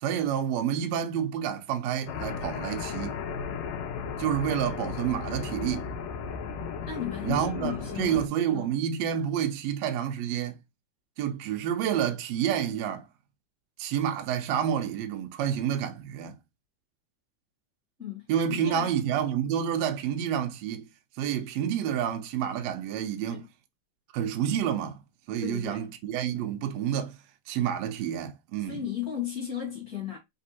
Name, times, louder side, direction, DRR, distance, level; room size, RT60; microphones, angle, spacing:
voice 1, 0.0-3.2 4.2-5.9 7.2-10.6 11.2-13.1 13.8-16.4 18.3-20.9 21.2-23.5 24.1-25.0 25.3-27.2 27.5-28.8, right 9 dB, 80° right, 1.5 m, -29 dB
sound 1, 2.1-8.3, left 6 dB, 85° left, 1.5 m, -35 dB
voice 2, 6.8-8.2 8.5-8.7 18.0-18.9 23.3-23.4 25.4-25.9 28.7-30.2, left 9 dB, 40° left, 1.5 m, -35 dB
4.7 x 3.3 x 2.8 m
omnidirectional pair, 3.9 m